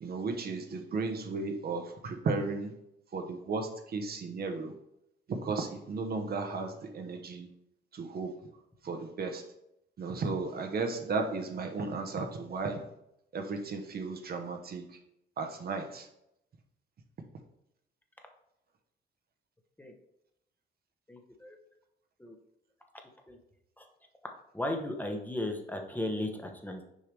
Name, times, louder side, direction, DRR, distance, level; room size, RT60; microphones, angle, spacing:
voice 1, 0.0-2.7 3.1-4.8 5.3-7.5 7.9-8.3 8.8-9.5 10.0-12.9 13.3-15.0 15.4-16.1, right 4 dB, 50° right, 4 dB, 0.9 m, -34 dB
voice 2, 21.1-21.6 22.2-22.4 23.3-23.4 23.8-23.9 24.5-26.9, left 1 dB, 10° left, 3 dB, 0.9 m, -35 dB
6.5 x 4.7 x 3.3 m, 0.80 s
cardioid pair, 90°, 20 cm